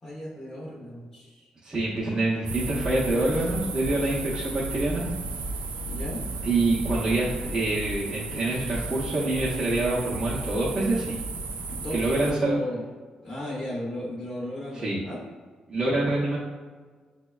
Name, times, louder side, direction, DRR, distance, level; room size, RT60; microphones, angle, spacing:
voice 1, 0.0-1.5 5.9-6.2 11.7-12.0 12.3-12.8 13.2-15.3, left 1 dB, 25° left, -6 dB, 0.7 m, -35 dB
voice 2, 1.6-5.0 6.4-11.2 11.9-12.6 14.7-15.0 15.7-16.4, right 2 dB, 25° right, -8 dB, 0.6 m, -26 dB
sound 1, 2.4-12.3, right 3 dB, 90° right, 0.4 m, -34 dB
6.1 x 2.1 x 2.3 m, 1.5 s
wide cardioid pair, 165°, 2 cm